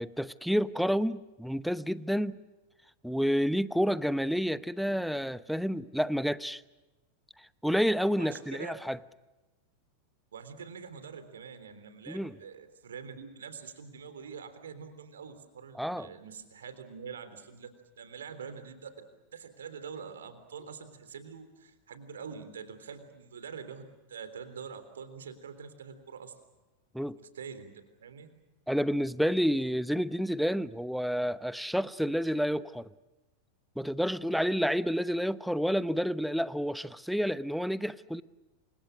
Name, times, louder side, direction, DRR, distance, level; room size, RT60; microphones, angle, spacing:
voice 1, 0.0-2.4 3.0-6.6 7.6-9.0 12.1-12.4 15.7-16.1 26.9-27.2 28.7-32.9 33.8-38.2, equal, ahead, 18 dB, 0.8 m, -29 dB
voice 2, 8.2-8.8 10.3-19.1 19.3-26.3 27.1-27.7 28.0-28.3, right 6 dB, 65° right, 11 dB, 3.4 m, -45 dB
29.0 x 26.0 x 6.4 m, 1.1 s
figure-of-eight pair, 90°, 0 cm